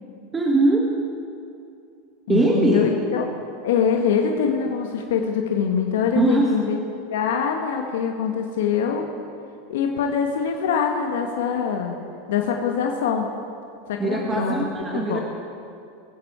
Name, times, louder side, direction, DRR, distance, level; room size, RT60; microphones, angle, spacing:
voice 1, 0.3-0.9 2.3-2.9 6.1-6.6 14.0-15.2, right 2 dB, 15° right, -1 dB, 1.3 m, -20 dB
voice 2, 2.3-3.2 3.6-6.8 7.1-9.0 9.7-12.0 12.3-13.3 13.9-14.6 14.9-15.2, left 7 dB, 80° left, 3 dB, 1.2 m, -23 dB
20.5 x 7.9 x 4.9 m, 2.5 s
supercardioid pair, 120°, 0 cm